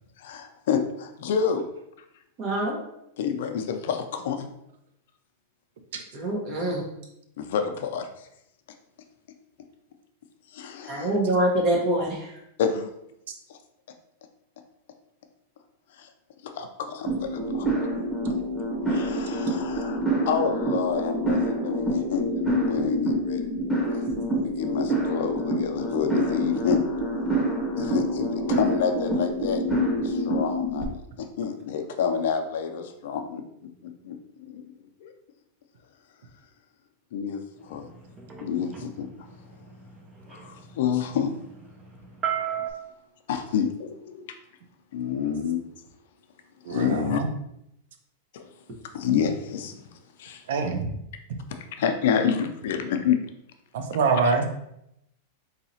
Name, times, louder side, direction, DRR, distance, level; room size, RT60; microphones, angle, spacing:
voice 1, 0.2-1.6 3.2-4.5 7.4-8.1 10.5-11.2 12.6-12.9 13.5-13.6 16.0-16.1 16.4-17.7 18.9-20.0 20.3-23.5 24.3-26.8 27.8-29.6 30.0-33.4 34.0-34.2 34.4-34.6 35.0-35.1 37.1-37.9 38.4-39.1 40.3-41.3 43.3-44.3 44.9-45.6 46.7-47.2 48.3-48.4 48.9-49.7 50.2-50.4 51.8-53.2, left 7 dB, 70° left, 7 dB, 0.5 m, -28 dB
voice 2, 2.4-2.7 6.1-6.8 10.9-12.2, right 1 dB, 45° right, -1 dB, 1.1 m, -24 dB
sound 1, 17.1-30.9, right 1 dB, 5° left, 1.0 m, -27 dB
sound 2, 37.7-42.7, right 9 dB, 20° right, 0.6 m, -35 dB
voice 3, 46.6-47.3 50.5-50.9 53.7-54.5, right 5 dB, 75° right, 6 dB, 0.6 m, -25 dB
3.9 x 2.8 x 2.8 m, 0.79 s
hypercardioid pair, 125°, 0 cm